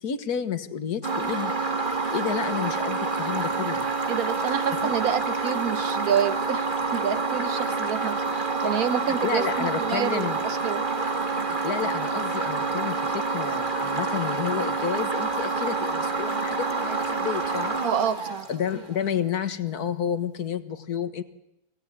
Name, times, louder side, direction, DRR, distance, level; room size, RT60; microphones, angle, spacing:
voice 1, 0.0-1.5 2.1-3.9 4.8-4.9 9.2-10.4 11.5-17.8 18.5-21.2, left 8 dB, 90° left, 11 dB, 1.9 m, -30 dB
sound 1, 1.0-19.0, right 4 dB, 35° right, 2.0 m, -27 dB
voice 2, 4.1-10.8 17.8-18.5, right 8 dB, 70° right, 12 dB, 1.5 m, -28 dB
24.5 x 17.5 x 9.8 m, 0.87 s
omnidirectional pair, 1.6 m